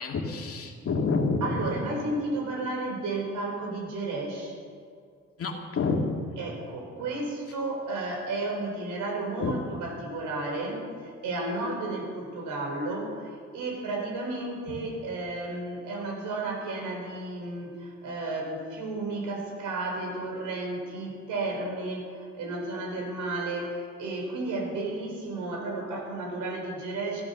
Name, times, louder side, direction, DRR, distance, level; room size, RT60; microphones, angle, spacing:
voice 1, 0.0-1.7 5.4-6.1 9.4-9.6 14.7-14.8, left 4 dB, 50° left, 2 dB, 2.2 m, -28 dB
voice 2, 1.4-4.6 6.4-27.2, right 2 dB, 85° right, 1 dB, 4.1 m, -33 dB
15.0 x 11.5 x 6.7 m, 2.2 s
cardioid pair, 90°, 30 cm